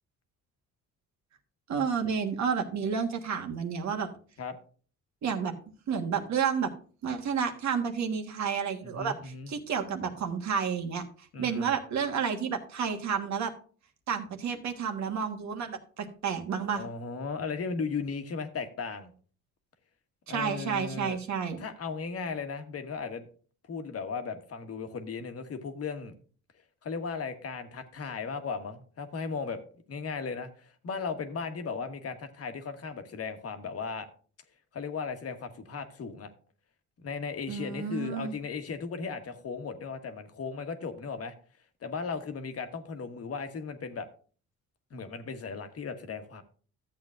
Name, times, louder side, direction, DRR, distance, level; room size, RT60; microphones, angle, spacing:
voice 1, 1.7-4.1 5.2-5.5 5.9-6.7 7.0-11.0 11.4-13.5 14.1-16.8 20.3-21.6 37.5-38.4, right 6 dB, 65° right, 4 dB, 1.4 m, -30 dB
voice 2, 8.8-9.5 11.3-11.7 16.7-19.1 20.3-21.2 21.6-23.3 23.7-26.1 26.8-29.6 29.9-34.1 34.7-36.3 37.0-41.3 41.8-44.1 44.9-46.4, left 5 dB, 50° left, 7 dB, 1.3 m, -36 dB
13.0 x 7.9 x 2.5 m, 0.41 s
cardioid pair, 90°, 30 cm